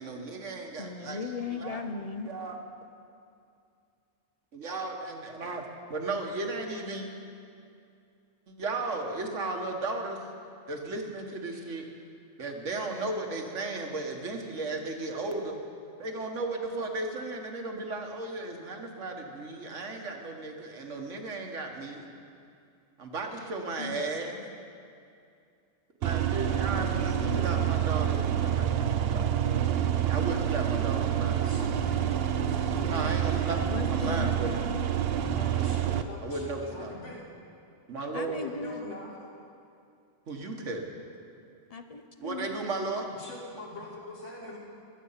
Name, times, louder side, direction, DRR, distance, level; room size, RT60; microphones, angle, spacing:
voice 1, 0.0-1.8 2.3-2.6 4.5-5.6 5.9-7.1 8.5-10.2 10.7-11.9 12.4-15.6 16.0-22.1 23.0-24.5 26.0-29.6 30.1-31.4 32.9-34.5 36.2-36.9 37.9-38.4 40.3-40.9 42.2-43.1, right 3 dB, 75° right, 3 dB, 1.7 m, -35 dB
voice 2, 0.8-2.3 23.8-24.0 26.5-27.8 33.6-34.9 38.1-38.9 41.7-42.6, left 5 dB, 45° left, 7 dB, 0.5 m, -38 dB
sound 1, 26.0-36.0, right 10 dB, 60° right, 0.7 m, -27 dB
voice 3, 31.4-33.1 35.4-37.3 38.3-39.2 43.0-44.6, left 2 dB, 80° left, -5 dB, 2.4 m, -43 dB
21.0 x 8.0 x 5.7 m, 2.4 s
omnidirectional pair, 1.3 m